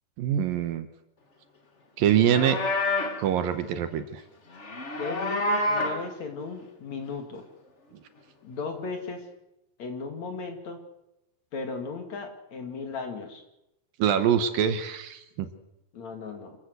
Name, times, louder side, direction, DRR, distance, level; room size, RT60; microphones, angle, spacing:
voice 1, 0.2-0.9 2.0-2.6 3.2-4.2 14.0-15.5, right 9 dB, 70° right, 10 dB, 2.7 m, -24 dB
Livestock farm animals working animals, 2.1-3.2 4.5-6.1, left 2 dB, 35° left, 1.1 m, -28 dB
voice 2, 5.0-7.4 8.4-9.2 9.8-10.8 11.5-13.4 15.9-16.6, left 4 dB, 50° left, 5 dB, 3.3 m, -36 dB
26.5 x 15.0 x 8.2 m, 0.89 s
omnidirectional pair, 4.5 m